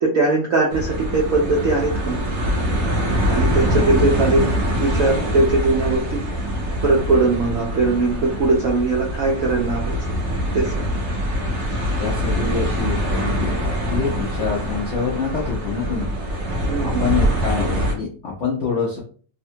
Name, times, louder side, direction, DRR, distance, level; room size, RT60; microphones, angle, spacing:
voice 1, 0.0-2.2 3.3-6.2 6.8-9.9 10.5-10.7 16.6-17.1, right 3 dB, 80° right, -2 dB, 0.7 m, -20 dB
sound 1, 0.7-17.9, equal, 55° right, 1.0 m, -24 dB
voice 2, 12.0-16.1 16.8-19.0, left 5 dB, 75° left, -3 dB, 0.6 m, -26 dB
3.4 x 2.1 x 2.7 m, 0.42 s
omnidirectional pair, 2.0 m